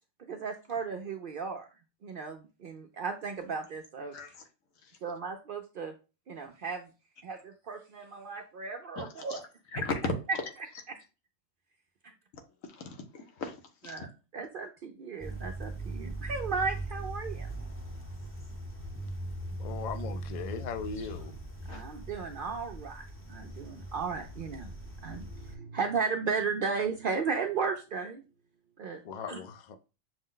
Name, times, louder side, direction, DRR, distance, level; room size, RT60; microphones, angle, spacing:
voice 1, 0.3-1.7 2.0-4.2 5.0-5.9 6.3-6.9 7.2-9.4 10.9-11.0 13.9-17.5 21.7-28.2 28.8-29.0 29.3-29.4, right 5 dB, 65° right, 0.5 m, -35 dB
voice 2, 4.1-4.4 4.8-4.9 9.0-9.4 9.7-10.1 12.8-13.6 13.8-14.1 21.7-21.8, left 4 dB, 90° left, 1.3 m, -36 dB
sound 1, 15.2-25.6, right 1 dB, 15° left, 0.5 m, -40 dB
voice 3, 19.6-21.3 29.0-29.8, left 5 dB, 70° left, 0.4 m, -38 dB
6.2 x 2.1 x 3.8 m
omnidirectional pair, 1.4 m